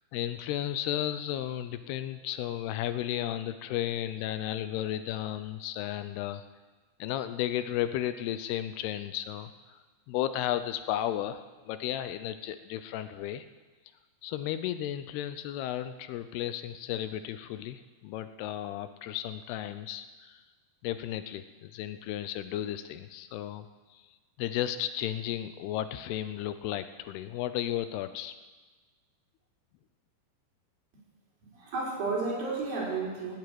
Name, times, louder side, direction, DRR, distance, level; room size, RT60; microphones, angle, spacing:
voice 1, 0.1-6.4 7.0-9.8 10.1-13.5 14.2-20.4 20.8-23.7 23.9-24.0 24.4-28.3, left 12 dB, 80° left, 11 dB, 2.6 m, -34 dB
voice 2, 31.4-33.4, right 3 dB, 60° right, -4 dB, 5.9 m, -32 dB
17.5 x 8.2 x 9.2 m, 1.3 s
omnidirectional pair, 4.7 m